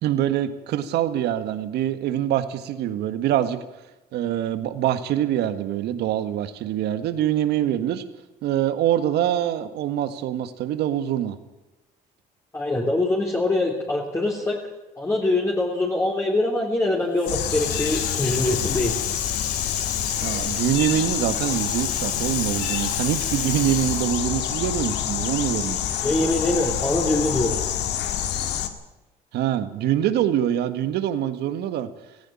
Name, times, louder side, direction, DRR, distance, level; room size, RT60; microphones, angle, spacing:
voice 1, 0.0-3.6 4.1-8.0 8.4-11.4 20.2-25.8 29.3-31.9, right 11 dB, 80° right, 11 dB, 1.7 m, -24 dB
voice 2, 12.5-14.6 15.0-18.9 26.0-27.6, left 2 dB, 15° left, -3 dB, 3.4 m, -23 dB
Water tap faucet, 17.2-25.0 25.3-26.6, left 7 dB, 55° left, 3.2 m, -34 dB
sound 1, 17.3-28.7, left 10 dB, 90° left, 1.9 m, -27 dB
16.5 x 16.0 x 10.0 m, 1.0 s
cardioid pair, 110°, 17 cm